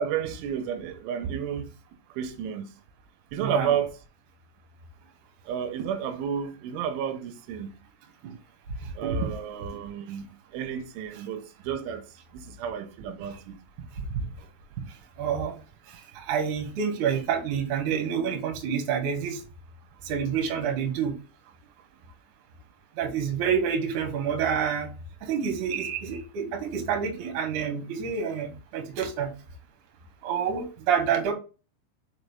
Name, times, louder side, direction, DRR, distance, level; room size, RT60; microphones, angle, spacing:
voice 1, 0.0-1.7 2.1-2.7 3.3-4.0 5.5-7.7 9.0-10.3 10.5-12.0 12.3-13.6, right 8 dB, 90° right, 3.2 m, -31 dB
voice 2, 3.4-3.8 8.2-8.3 9.0-9.3 15.2-15.5 16.2-19.4 20.1-21.1 23.0-24.9 25.2-29.3 30.2-31.3, right 7 dB, 65° right, 2.0 m, -28 dB
6.4 x 4.7 x 3.5 m
omnidirectional pair, 5.4 m